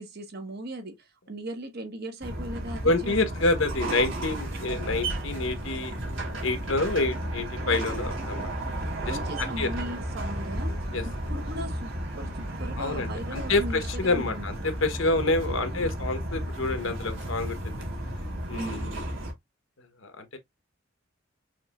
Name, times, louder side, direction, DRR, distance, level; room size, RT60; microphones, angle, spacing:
voice 1, 0.0-3.3 8.4-8.5 9.1-10.8 11.0-14.5 15.5-15.9 18.5-18.9, right 1 dB, 55° right, 1.2 m, -38 dB
sound 1, 2.2-19.3, right 1 dB, 75° right, 2.2 m, -33 dB
voice 2, 2.8-5.9 6.4-8.5 9.1-9.7 10.9-11.0 12.8-17.8 18.5-19.0 20.0-20.4, left 2 dB, 80° left, 1.1 m, -28 dB
6.4 x 3.3 x 2.4 m
head